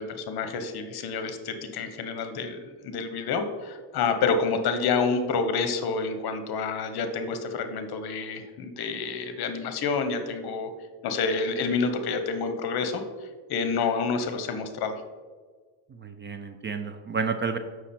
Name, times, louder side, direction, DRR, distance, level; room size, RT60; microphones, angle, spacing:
voice 1, 0.0-10.7 11.0-15.0, left 5 dB, 55° left, 8 dB, 1.1 m, -28 dB
voice 2, 15.9-17.6, right 5 dB, 25° right, 8 dB, 0.4 m, -31 dB
7.0 x 6.1 x 4.3 m, 1.5 s
cardioid pair, 110°, 45 cm